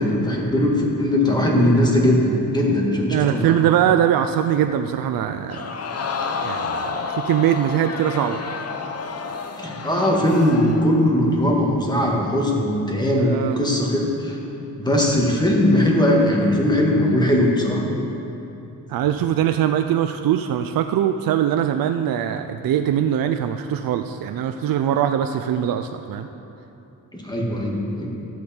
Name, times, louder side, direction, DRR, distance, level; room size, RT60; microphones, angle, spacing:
voice 1, 0.0-3.5 9.6-14.4 14.8-17.8 27.1-28.2, left 1 dB, 10° left, -2 dB, 1.8 m, -19 dB
voice 2, 3.1-5.7 6.4-8.4 13.2-13.6 18.9-26.3, right 10 dB, 75° right, 7 dB, 0.5 m, -22 dB
Crowd, 5.5-11.0 11.4-11.5, left 5 dB, 45° left, 0.8 m, -30 dB
12.5 x 8.2 x 4.3 m, 2.9 s
cardioid pair, 90°, 35 cm